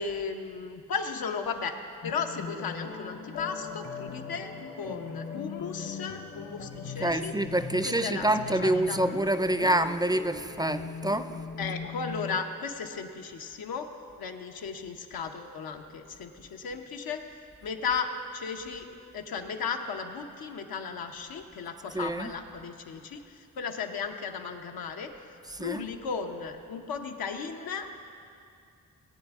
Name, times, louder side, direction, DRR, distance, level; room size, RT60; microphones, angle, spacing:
voice 1, 0.0-1.7 2.0-4.5 4.8-7.3 7.8-9.0 11.6-13.9 14.2-17.2 17.6-18.9 19.1-25.1 25.6-28.1, left 5 dB, 90° left, 4 dB, 0.9 m, -35 dB
sound 1, 2.0-12.4, left 5 dB, 65° left, 1.1 m, -39 dB
voice 2, 7.0-11.3 21.9-22.3 25.5-25.8, right 1 dB, 10° right, 10 dB, 0.4 m, -27 dB
19.0 x 8.9 x 3.6 m, 2.4 s
cardioid pair, 70°, 35 cm